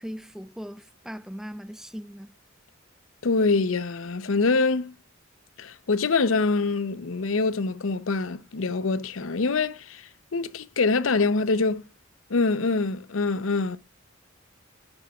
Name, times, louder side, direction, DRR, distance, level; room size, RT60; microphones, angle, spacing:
voice 1, 0.0-2.3, equal, ahead, 0.4 m, -39 dB
voice 2, 3.2-4.9 5.6-11.8 12.3-13.8, left 3 dB, 75° left, 0.7 m, -25 dB
11.0 x 9.9 x 2.3 m
head